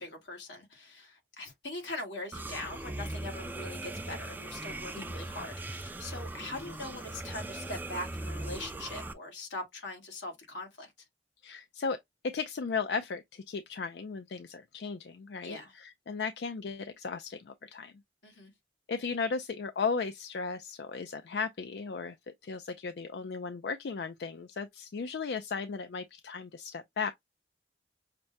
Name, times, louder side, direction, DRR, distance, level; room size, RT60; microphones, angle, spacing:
voice 1, 0.0-10.9 15.4-15.8 18.2-18.5, left 2 dB, 85° left, 1.6 m, -42 dB
sound 1, 2.3-9.1, right 2 dB, 10° right, 0.3 m, -39 dB
voice 2, 11.4-12.0 12.2-17.9 18.9-22.2 22.4-27.1, left 5 dB, 65° left, 0.4 m, -36 dB
5.8 x 2.1 x 2.6 m
head